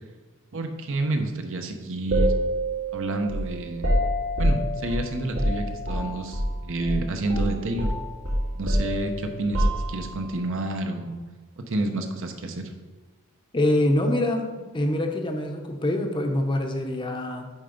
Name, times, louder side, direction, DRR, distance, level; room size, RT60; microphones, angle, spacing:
voice 1, 0.5-2.3 2.9-3.9 4.4-7.9 8.5-11.1 11.6-12.6, right 2 dB, 65° right, 5 dB, 0.8 m, -29 dB
sound 1, 2.1-6.5 6.8-7.0 7.3-10.3, equal, 85° right, 2.0 m, -26 dB
voice 2, 13.5-14.5 14.7-17.5, left 1 dB, 25° left, 4 dB, 0.7 m, -24 dB
8.8 x 3.4 x 5.1 m, 1.3 s
head